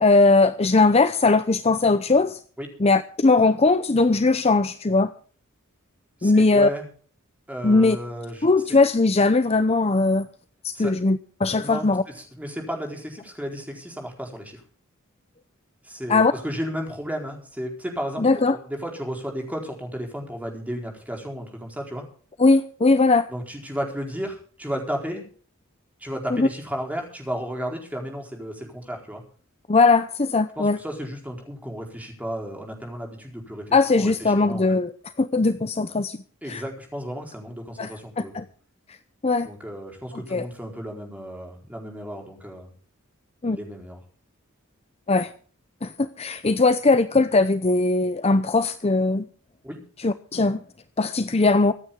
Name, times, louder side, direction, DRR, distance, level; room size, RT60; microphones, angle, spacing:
voice 1, 0.0-2.4 2.8-5.1 6.2-6.7 7.6-8.0 8.4-10.3 10.6-12.0 16.1-16.3 18.2-18.6 22.4-23.3 26.3-26.5 29.7-30.8 33.7-34.9 35.2-36.2 36.5-36.6 37.8-37.9 38.2-38.4 39.2-39.5 40.3-40.4 43.4-43.6 45.1-45.3 45.8-49.3 50.0-50.6 51.0-51.7, left 3 dB, 30° left, 11 dB, 0.7 m, -19 dB
voice 2, 6.2-6.9 7.5-8.8 10.8-10.9 11.6-11.9 12.1-14.6 15.8-22.0 23.3-25.2 26.0-29.2 30.6-33.6 33.9-34.6 36.4-38.3 39.4-42.7 43.4-44.0 49.6-49.8, equal, 5° right, 1 dB, 4.3 m, -33 dB
25.0 x 9.5 x 3.7 m, 0.43 s
head